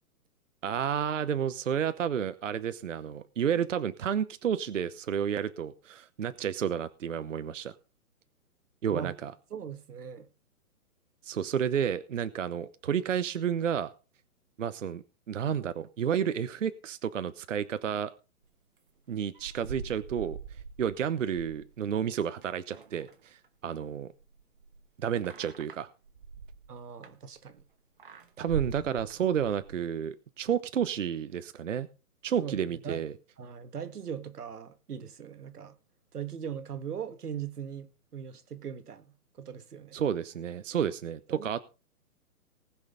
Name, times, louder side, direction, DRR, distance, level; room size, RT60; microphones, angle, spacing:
voice 1, 0.6-7.7 8.8-9.3 11.2-13.9 14.6-18.1 19.1-20.4 20.8-24.1 25.0-25.9 28.4-31.9 32.2-33.1 39.9-41.6, right 8 dB, 55° right, 0.9 m, -31 dB
voice 2, 9.5-10.3 26.7-27.6 32.4-32.6 32.8-33.0 33.4-35.8 36.1-40.0 41.3-41.6, right 8 dB, 90° right, 1.8 m, -40 dB
sound 1, 19.1-23.6 23.9-27.6 28.0-29.9, right 6 dB, 35° right, 1.1 m, -43 dB
19.0 x 6.5 x 5.1 m
hypercardioid pair, 175°, 45 cm